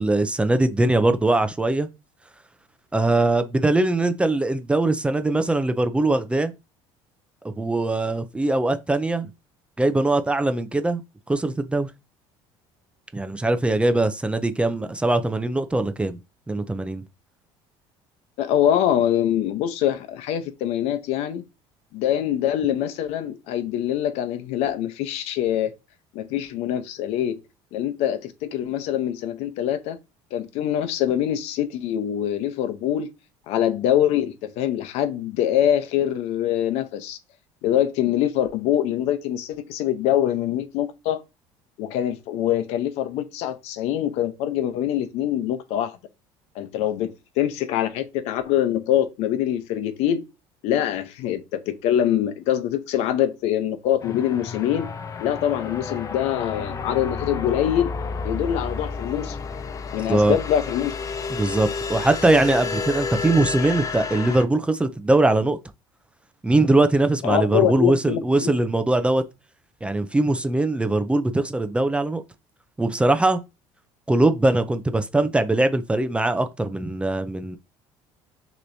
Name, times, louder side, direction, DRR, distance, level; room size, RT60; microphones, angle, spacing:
voice 1, 0.0-1.9 2.9-6.5 7.4-9.3 9.8-11.0 11.3-11.9 13.1-16.2 16.5-17.0 60.1-60.4 61.3-65.6 66.4-69.2 69.8-72.2 72.8-73.4 74.1-77.6, right 2 dB, 10° right, 0.5 m, -21 dB
voice 2, 18.4-21.4 21.9-25.7 26.1-27.4 27.7-30.0 30.3-33.1 33.5-37.2 37.6-41.2 41.8-46.0 46.5-50.2 50.6-54.9 55.2-57.9 58.2-59.4 59.9-61.0 67.2-68.6, left 11 dB, 75° left, 0.8 m, -24 dB
sound 1, 54.0-64.4, left 5 dB, 30° left, 0.6 m, -31 dB
6.4 x 3.0 x 2.7 m
cardioid pair, 115°, 11 cm